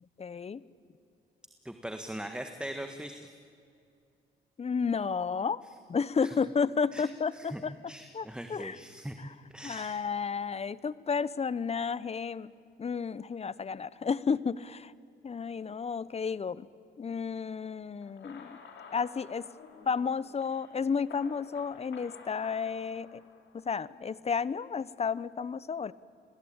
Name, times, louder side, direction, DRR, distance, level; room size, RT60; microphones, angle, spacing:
voice 1, 0.2-0.6 4.6-5.6 5.9-8.8 9.2-9.3 9.6-12.5 12.8-14.9 15.2-16.7 17.0-18.6 18.9-19.5 19.9-23.2 23.5-25.9, left 5 dB, 30° left, 18 dB, 0.8 m, -32 dB
voice 2, 1.6-3.3 6.2-6.3 6.9-7.1 7.3-7.6 7.9-9.2 9.5-10.0, right 1 dB, 5° right, 6 dB, 1.5 m, -40 dB
sound 1, 18.0-23.8, left 5 dB, 65° left, 4.1 m, -52 dB
29.0 x 21.0 x 8.8 m, 2.5 s
cardioid pair, 90°, 20 cm